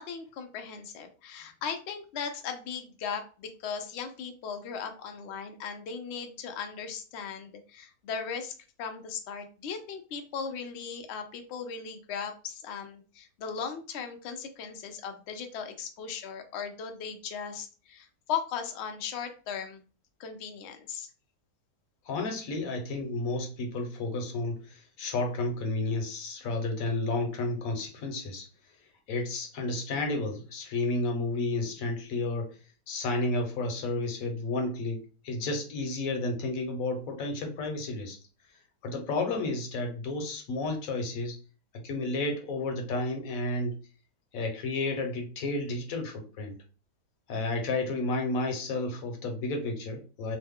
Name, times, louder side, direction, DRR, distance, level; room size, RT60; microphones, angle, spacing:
voice 1, 0.0-8.5 8.8-19.8 20.2-21.1, left 6 dB, 85° left, 5 dB, 0.5 m, -37 dB
voice 2, 22.0-28.5 29.1-32.6 32.9-38.2 38.8-41.4 41.8-43.8 44.3-46.5 47.3-50.4, left 2 dB, 65° left, 4 dB, 1.0 m, -31 dB
3.0 x 2.1 x 3.5 m, 0.36 s
omnidirectional pair, 1.8 m